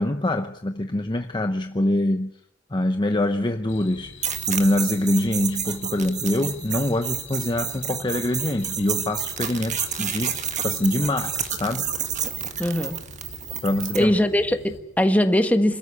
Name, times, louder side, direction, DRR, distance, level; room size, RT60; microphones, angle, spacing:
voice 1, 0.0-2.3 2.7-10.4 10.6-11.9 13.6-14.2, left 1 dB, 25° left, 7 dB, 0.8 m, -24 dB
sound 1, 3.7-14.8, left 3 dB, 80° left, 4.2 m, -44 dB
sound 2, 4.2-14.0, right 8 dB, 40° right, 1.8 m, -30 dB
voice 2, 12.6-13.0 13.9-15.8, left 1 dB, 10° left, 7 dB, 1.5 m, -21 dB
26.5 x 13.5 x 9.6 m, 0.80 s
head